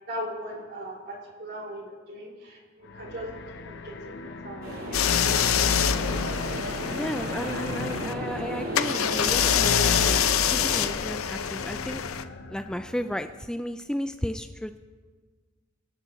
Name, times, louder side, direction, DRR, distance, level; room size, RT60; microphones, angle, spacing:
voice 1, 0.1-3.3 3.6-5.6, equal, 50° right, 0 dB, 3.5 m, -39 dB
sound 1, 2.8-13.4, left 3 dB, 60° left, 0.9 m, -40 dB
sound 2, 4.6-10.9, right 1 dB, 75° right, 4.0 m, -34 dB
sound 3, 4.9-8.1 8.7-12.2, left 8 dB, 90° left, 0.6 m, -25 dB
voice 2, 6.9-12.0 12.5-14.8, equal, 5° left, 8 dB, 0.3 m, -34 dB
25.0 x 11.5 x 3.1 m, 1.5 s
head